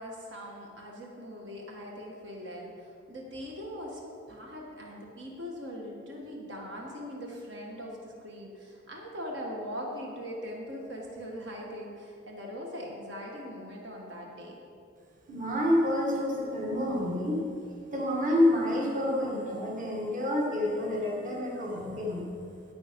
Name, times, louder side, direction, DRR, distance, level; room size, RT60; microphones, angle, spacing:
voice 1, 0.0-4.0 4.2-14.6, equal, 70° right, -1 dB, 1.5 m, -41 dB
voice 2, 15.3-17.4 17.9-22.2, left 1 dB, 40° right, -2 dB, 1.7 m, -28 dB
9.5 x 8.9 x 5.2 m, 2.4 s
head